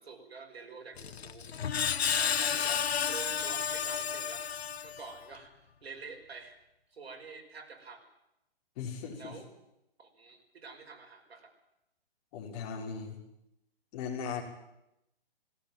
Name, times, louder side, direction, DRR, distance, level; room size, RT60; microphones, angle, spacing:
voice 1, 0.0-1.5 2.1-4.5 4.8-5.5 5.8-6.5 6.9-8.1 9.1-9.4 10.0-11.5, right 4 dB, 80° right, 2 dB, 5.5 m, -48 dB
Screech, 1.0-5.3, left 7 dB, 85° left, 1.2 m, -32 dB
voice 2, 8.8-9.3 12.3-13.2 13.9-14.4, left 6 dB, 35° left, 1 dB, 5.1 m, -38 dB
18.0 x 17.5 x 9.2 m, 0.86 s
hypercardioid pair, 145°, 31 cm